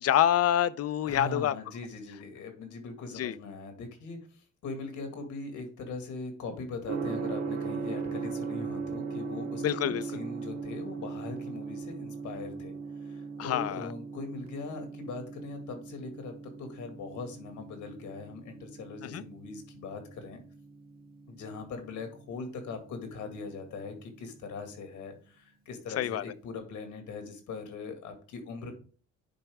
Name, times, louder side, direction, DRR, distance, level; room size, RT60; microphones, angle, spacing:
voice 1, 0.0-1.5 3.2-3.3 9.6-10.0 13.4-13.9 19.1-19.2 26.0-26.2, left 11 dB, 55° left, 0.5 m, -26 dB
voice 2, 1.0-12.7 13.0-20.4 21.3-28.7, left 4 dB, 80° left, 2.1 m, -41 dB
Gong, 6.9-24.7, right 5 dB, 60° right, 1.5 m, -39 dB
10.0 x 4.4 x 3.6 m
cardioid pair, 90°, 30 cm